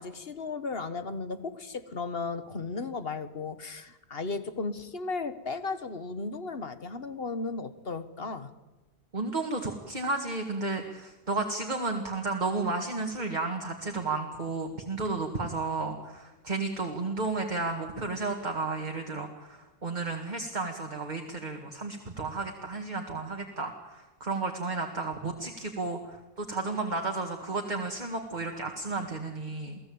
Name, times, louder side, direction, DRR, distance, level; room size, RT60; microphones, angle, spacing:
voice 1, 0.0-8.5, left 4 dB, 60° left, 1.7 m, -35 dB
voice 2, 9.1-29.8, right 3 dB, 45° right, 2.2 m, -33 dB
29.5 x 18.0 x 8.8 m
omnidirectional pair, 1.1 m